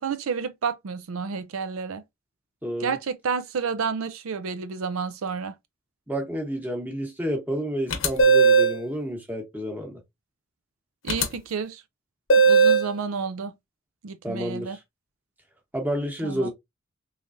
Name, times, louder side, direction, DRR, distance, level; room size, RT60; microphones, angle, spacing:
voice 1, 0.0-2.0 2.8-5.5 11.0-11.8 12.4-13.6 14.0-14.8 16.2-16.5, right 5 dB, 90° right, 0.5 m, -30 dB
voice 2, 2.6-3.0 6.1-10.0 14.2-14.8 15.7-16.5, equal, 10° right, 1.0 m, -30 dB
sound 1, 7.9-8.8 11.1-11.3 12.3-12.9, right 4 dB, 75° left, 0.8 m, -17 dB
3.7 x 3.2 x 2.5 m
head